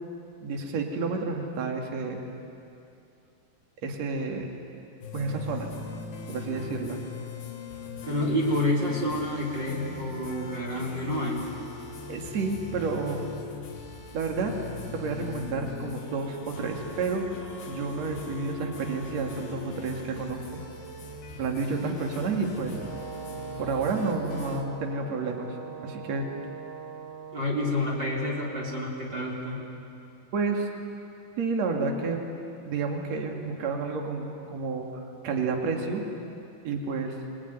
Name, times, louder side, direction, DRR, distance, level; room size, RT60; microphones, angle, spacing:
voice 1, 0.4-2.2 3.8-4.5 5.1-5.7 6.3-7.0 12.1-13.2 14.1-14.5 14.9-17.2 17.7-20.4 21.4-22.8 23.6-25.6 25.8-26.3 30.3-30.7 31.4-32.2 32.7-36.0 36.6-37.2, right 4 dB, 45° right, 2 dB, 2.7 m, -30 dB
sound 1, 5.0-24.6, left 5 dB, 55° left, 3.7 m, -40 dB
voice 2, 8.1-11.4 27.3-29.6, left 1 dB, 25° right, -4 dB, 3.6 m, -28 dB
Brass instrument, 22.6-28.8, right 6 dB, 85° right, 6.6 m, -42 dB
28.0 x 19.5 x 9.5 m, 2.7 s
omnidirectional pair, 5.6 m